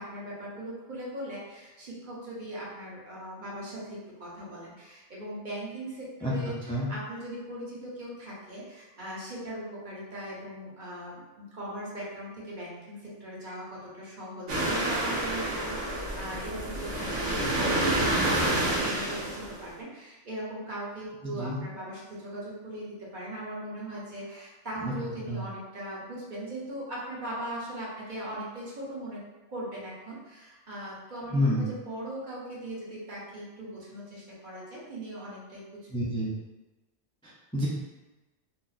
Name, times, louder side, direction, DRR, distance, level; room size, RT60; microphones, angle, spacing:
voice 1, 0.0-29.2 29.5-35.9, right 1 dB, 45° right, -6 dB, 0.9 m, -39 dB
sound 1, 14.5-19.7, right 1 dB, 80° right, 1.2 m, -28 dB
voice 2, 21.2-21.6 24.8-24.9 25.3-25.4 31.3-31.7 35.9-36.3 37.2-37.7, equal, 10° left, -7 dB, 0.4 m, -29 dB
2.8 x 2.4 x 3.9 m, 1.1 s
omnidirectional pair, 1.2 m